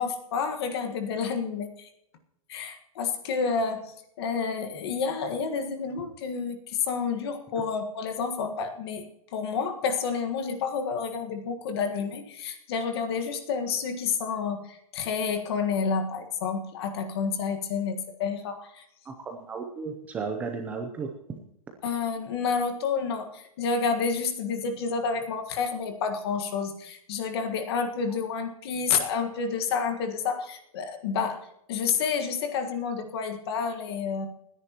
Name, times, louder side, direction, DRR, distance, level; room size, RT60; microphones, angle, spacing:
voice 1, 0.0-1.9 2.5-9.0 9.3-18.8 21.8-31.4 31.7-34.3, left 5 dB, 40° left, 6 dB, 1.6 m, -29 dB
voice 2, 19.0-21.1, right 5 dB, 10° right, 2 dB, 0.6 m, -34 dB
30.0 x 10.0 x 3.0 m, 0.81 s
supercardioid pair, 180°, 20 cm